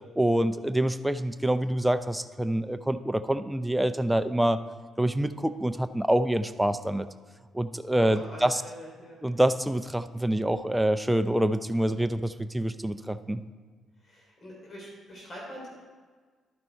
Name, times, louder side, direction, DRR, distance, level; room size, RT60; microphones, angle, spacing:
voice 1, 0.2-4.6 5.0-7.1 7.5-8.6 9.2-13.4, right 1 dB, 5° right, 10 dB, 0.5 m, -26 dB
voice 2, 8.0-9.2 14.0-15.7, equal, 45° left, -3 dB, 3.5 m, -43 dB
11.5 x 9.6 x 4.6 m, 1.5 s
cardioid pair, 90°, 0 cm